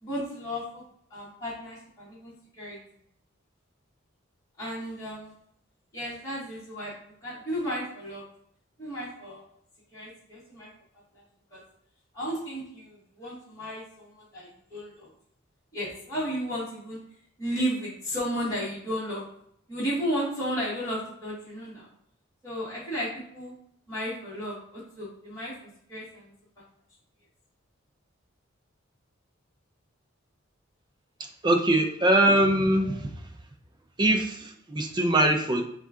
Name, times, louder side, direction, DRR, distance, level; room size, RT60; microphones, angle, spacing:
voice 1, 0.0-0.8 1.1-2.8 4.6-5.3 5.9-6.9 7.2-8.3 8.8-9.4 9.9-10.7 11.1-11.2 11.5-11.6 12.1-15.1 15.7-17.0 17.4-19.3 19.7-21.9 22.4-23.5 23.9-26.6 32.8-33.0, equal, 15° left, -9 dB, 1.6 m, -34 dB
voice 2, 31.4-33.2 34.0-35.6, right 1 dB, 20° right, 4 dB, 0.5 m, -22 dB
5.3 x 2.4 x 3.6 m, 0.69 s
head